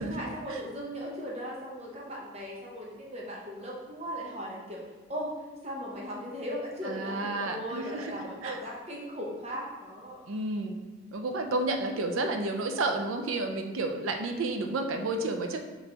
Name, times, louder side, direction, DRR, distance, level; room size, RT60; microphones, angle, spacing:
voice 1, 0.0-4.8 5.1-5.3 5.6-10.3, equal, 30° right, -3 dB, 0.8 m, -38 dB
voice 2, 6.8-8.6 10.3-10.8 11.1-15.6, right 2 dB, 75° right, 4 dB, 0.5 m, -31 dB
5.2 x 3.1 x 2.9 m, 1.3 s
head